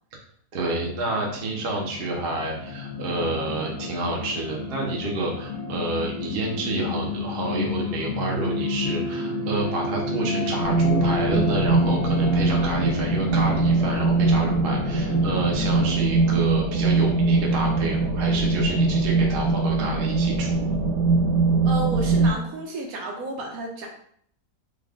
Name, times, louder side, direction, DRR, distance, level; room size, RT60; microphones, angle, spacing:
voice 1, 0.5-20.7, right 2 dB, 50° right, -1 dB, 0.7 m, -29 dB
sound 1, 0.8-16.0, left 3 dB, 80° left, 1.1 m, -31 dB
sound 2, 10.6-22.3, right 3 dB, 85° right, 1.2 m, -22 dB
voice 2, 21.6-23.9, right 2 dB, 70° right, 0 dB, 1.1 m, -32 dB
3.4 x 2.3 x 3.5 m, 0.64 s
omnidirectional pair, 1.7 m